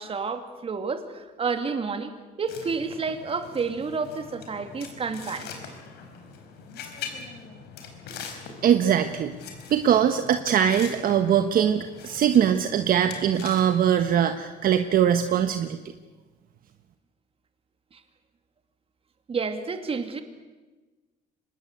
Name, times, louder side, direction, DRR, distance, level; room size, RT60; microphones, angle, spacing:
voice 1, 0.0-2.1 2.4-5.5 17.9-18.0 19.3-20.2, right 5 dB, 35° right, 8 dB, 2.7 m, -30 dB
sound 1, 2.5-14.3, left 6 dB, 75° left, 4.8 m, -42 dB
voice 2, 8.6-9.3 9.7-15.8, right 9 dB, 60° right, 8 dB, 1.3 m, -22 dB
25.0 x 20.5 x 8.4 m, 1.2 s
cardioid pair, 110°, 17 cm